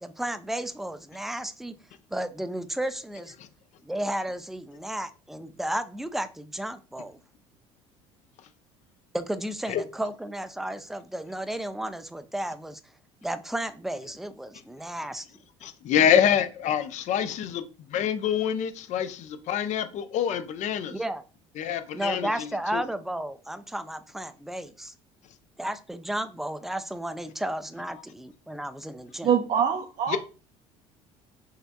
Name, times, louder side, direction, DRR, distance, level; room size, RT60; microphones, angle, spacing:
voice 1, 0.0-1.7 2.1-3.3 3.8-7.2 9.1-12.8 13.2-15.3 20.9-21.2 21.9-24.9 25.6-29.3, right 1 dB, ahead, 0.4 m, -33 dB
voice 2, 15.6-17.6 17.9-20.9 21.6-22.5 22.7-22.8 30.1-30.2, left 9 dB, 50° left, 0.6 m, -26 dB
voice 3, 29.2-30.2, right 8 dB, 45° right, 0.7 m, -24 dB
5.5 x 3.4 x 2.2 m
figure-of-eight pair, 60°, 16 cm